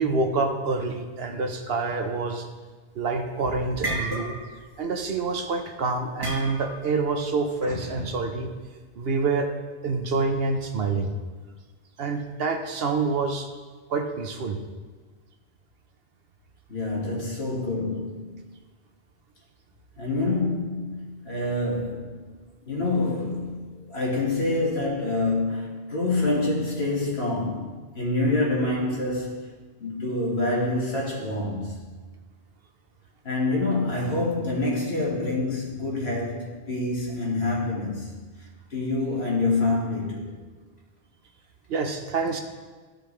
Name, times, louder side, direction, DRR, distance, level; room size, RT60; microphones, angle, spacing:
voice 1, 0.0-2.5 2.9-4.4 4.8-8.5 9.0-9.5 9.8-11.1 12.0-13.5 13.9-14.6 41.7-42.4, right 3 dB, 70° right, 5 dB, 1.0 m, -27 dB
sound 1, 2.9-3.3 3.6-4.7 4.9-5.2 6.2-6.9, right 1 dB, 20° right, 1.4 m, -32 dB
voice 2, 7.6-8.1 16.7-18.4 20.0-22.3 22.7-31.8 33.2-38.1 38.7-40.3, left 2 dB, 75° left, -4 dB, 2.2 m, -27 dB
13.5 x 5.1 x 3.2 m, 1.4 s
omnidirectional pair, 1.1 m